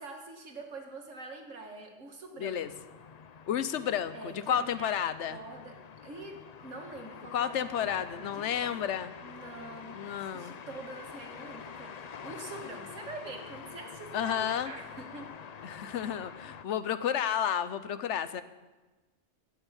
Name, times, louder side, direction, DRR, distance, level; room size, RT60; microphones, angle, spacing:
voice 1, 0.0-2.6 4.1-4.9 5.3-5.7 6.0-8.7 9.2-10.0 10.3-14.4 14.6-15.3, right 2 dB, 85° right, 2 dB, 2.1 m, -45 dB
voice 2, 2.4-2.7 3.5-5.4 7.3-9.1 9.9-10.6 14.1-14.7 15.6-18.4, left 9 dB, 70° left, 13 dB, 1.0 m, -31 dB
sound 1, 2.6-16.6, left 7 dB, 50° left, 0.5 m, -47 dB
17.5 x 6.3 x 7.3 m, 1.2 s
omnidirectional pair, 1.3 m